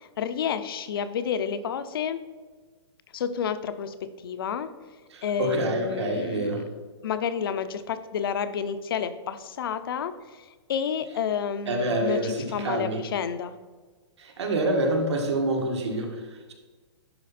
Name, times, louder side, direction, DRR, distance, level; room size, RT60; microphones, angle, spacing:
voice 1, 0.0-2.2 3.1-4.7 5.2-6.6 7.0-13.5, left 7 dB, 55° left, 12 dB, 0.7 m, -30 dB
voice 2, 5.1-6.7 11.7-13.0 14.2-16.5, right 2 dB, 70° right, 2 dB, 2.0 m, -27 dB
11.0 x 4.7 x 4.2 m, 1.4 s
hypercardioid pair, 170°, 15 cm